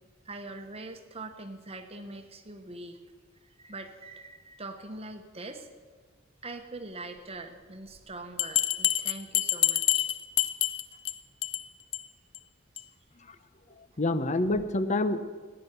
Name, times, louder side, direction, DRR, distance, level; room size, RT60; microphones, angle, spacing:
voice 1, 0.2-3.0 3.4-5.7 6.4-10.1, right 2 dB, 30° right, 6 dB, 1.1 m, -43 dB
Bell, 8.4-11.1 11.4-11.6 11.9-12.0 12.3-12.4 12.8-12.9, left 13 dB, 80° left, 0.7 m, -26 dB
voice 2, 13.7-15.2, left 2 dB, 35° left, 12 dB, 0.8 m, -28 dB
15.5 x 9.9 x 6.7 m, 1.6 s
head